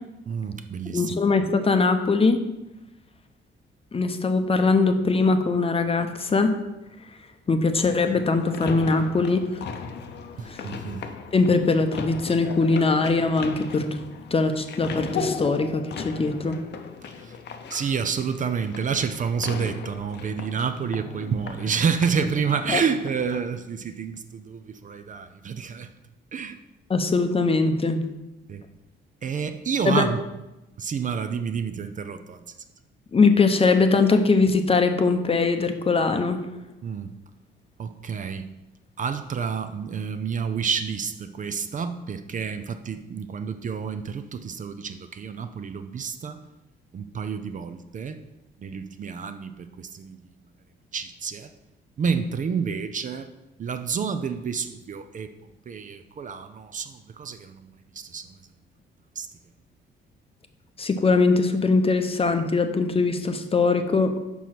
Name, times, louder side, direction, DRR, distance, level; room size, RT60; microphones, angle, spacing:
voice 1, 0.3-1.2 10.4-11.1 17.0-17.4 17.7-25.9 26.3-26.6 28.5-28.6 29.2-30.2 30.8-32.6 36.8-37.1 37.8-38.5 39.0-46.4 46.9-48.2 48.6-50.3 50.9-51.5 52.0-53.3 53.6-58.4 59.2-59.3, right 6 dB, 40° right, 10 dB, 0.5 m, -29 dB
voice 2, 0.9-2.4 3.9-6.5 7.5-9.4 10.5-10.6 11.3-13.9 14.3-16.6 22.7-22.8 26.9-28.0 29.9-30.1 33.1-36.4 60.8-64.2, left 3 dB, 30° left, 7 dB, 0.7 m, -21 dB
sound 1, 7.8-23.4, left 5 dB, 60° left, 0.7 m, -37 dB
5.4 x 4.7 x 5.8 m, 0.98 s
cardioid pair, 90°, 20 cm